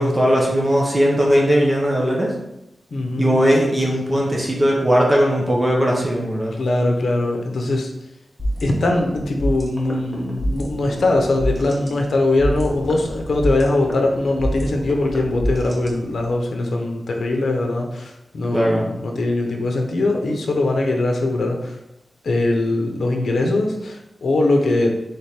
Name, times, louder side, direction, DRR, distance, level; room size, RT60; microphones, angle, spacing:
voice 1, 0.0-2.3 3.2-6.5 18.5-18.8, equal, 15° right, -2 dB, 0.7 m, -18 dB
voice 2, 2.9-3.4 6.6-7.9 8.6-21.7 22.2-25.0, left 2 dB, 75° left, 2 dB, 0.7 m, -21 dB
sound 1, 8.4-16.4, equal, 15° left, 1.0 m, -28 dB
3.6 x 3.4 x 4.3 m, 0.89 s
wide cardioid pair, 135°, 0 cm